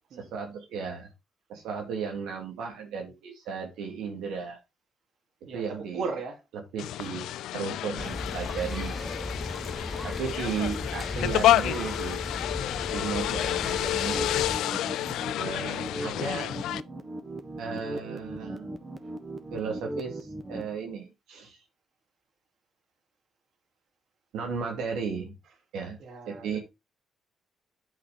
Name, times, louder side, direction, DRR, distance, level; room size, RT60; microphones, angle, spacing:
voice 1, 0.2-1.1 1.5-4.6 5.5-6.1 6.7-7.3 7.5-9.2 10.0-12.2 12.9-14.3 15.4-16.6 17.6-18.7 19.5-21.6 24.3-25.3 25.7-26.0 26.3-26.6, right 6 dB, 90° right, 2.5 m, -35 dB
voice 2, 5.4-6.4 26.0-26.6, right 4 dB, 70° right, 2.8 m, -36 dB
sound 1, 6.8-16.8, left 13 dB, 85° left, 0.4 m, -29 dB
sound 2, 7.9-14.6, left 1 dB, 15° left, 0.4 m, -36 dB
sound 3, 14.1-20.7, right 1 dB, 25° right, 1.5 m, -38 dB
8.8 x 4.9 x 5.1 m
cardioid pair, 90°, 0 cm